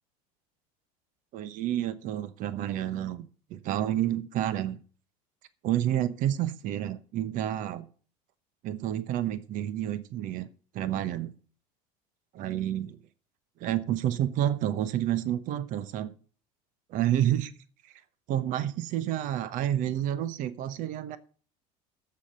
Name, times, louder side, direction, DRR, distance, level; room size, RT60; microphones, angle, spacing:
voice 1, 1.3-4.8 5.6-7.9 8.6-10.5 10.7-11.3 12.3-13.0 13.6-16.1 16.9-17.5 18.3-21.2, right 12 dB, 45° right, 14 dB, 1.0 m, -29 dB
7.8 x 7.1 x 7.9 m, 0.40 s
cardioid pair, 150°, 18 cm